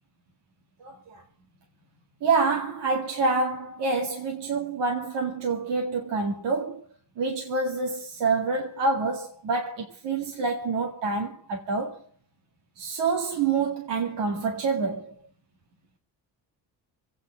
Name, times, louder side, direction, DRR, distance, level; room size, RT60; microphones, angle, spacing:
voice 1, 0.8-1.2 2.2-6.8 7.2-12.0 12.8-15.1, right 4 dB, 70° right, 2.2 m, -27 dB
26.0 x 9.1 x 4.9 m
cardioid pair, 75°, 43 cm